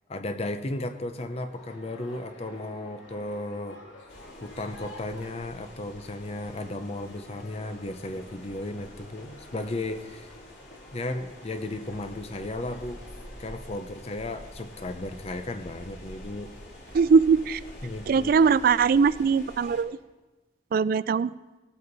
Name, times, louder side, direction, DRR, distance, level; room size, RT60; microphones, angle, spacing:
voice 1, 0.1-3.8 4.4-10.3 10.9-13.0 13.4-16.5 17.8-18.3, left 2 dB, 35° left, 7 dB, 0.7 m, -35 dB
sound 1, 0.7-13.5, left 1 dB, 85° left, 2.8 m, -50 dB
sound 2, 4.1-19.8, equal, 60° left, 2.5 m, -47 dB
voice 2, 16.9-17.6 18.1-20.0 20.7-21.3, right 5 dB, 50° right, 18 dB, 0.3 m, -21 dB
18.5 x 8.2 x 4.0 m, 1.2 s
head